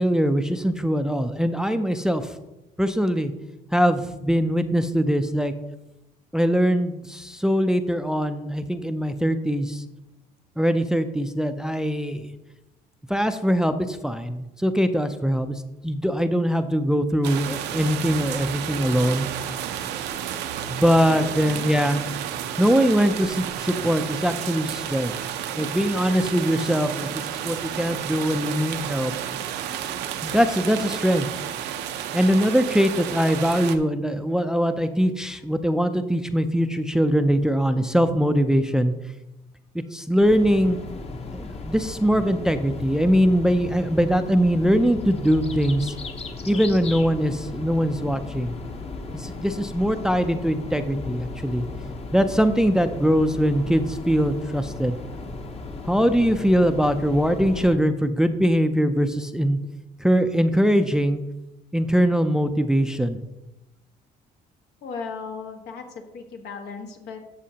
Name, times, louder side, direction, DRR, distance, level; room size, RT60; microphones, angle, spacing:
voice 1, 0.0-2.3 2.8-3.3 3.7-5.5 6.3-9.8 10.6-12.3 13.1-19.3 20.7-22.0 22.6-25.1 25.6-29.1 30.2-31.3 32.1-38.9 39.7-40.8 41.3-45.9 46.5-48.6 49.2-51.7 52.1-55.0 55.8-59.6 60.0-61.2 61.7-63.2, equal, 5° right, 9 dB, 0.4 m, -22 dB
sound 1, 17.2-33.8, right 10 dB, 80° right, 0.7 m, -31 dB
voice 2, 21.0-21.6 64.8-65.8 66.1-67.2, left 5 dB, 80° left, 3 dB, 1.5 m, -36 dB
sound 2, 40.2-57.7, left 3 dB, 35° left, 0.9 m, -36 dB
12.5 x 6.3 x 2.8 m, 0.98 s
cardioid pair, 110°, 17 cm